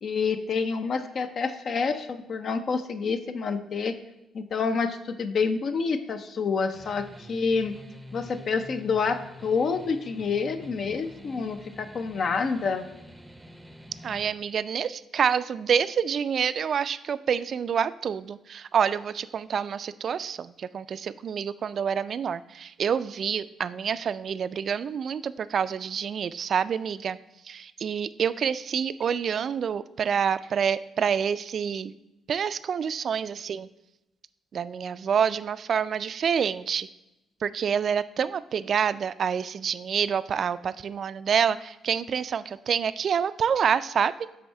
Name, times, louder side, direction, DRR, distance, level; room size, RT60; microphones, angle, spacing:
voice 1, 0.0-4.0 4.3-7.7 8.1-12.9, left 5 dB, 55° left, 9 dB, 0.6 m, -28 dB
sound 1, 6.7-14.3, left 1 dB, 10° right, 0.6 m, -46 dB
voice 2, 14.0-27.2 27.4-31.9 32.3-33.7 34.5-36.9 37.4-44.3, right 7 dB, 55° right, 15 dB, 0.3 m, -27 dB
7.7 x 3.5 x 5.4 m, 0.95 s
cardioid pair, 90°, 0 cm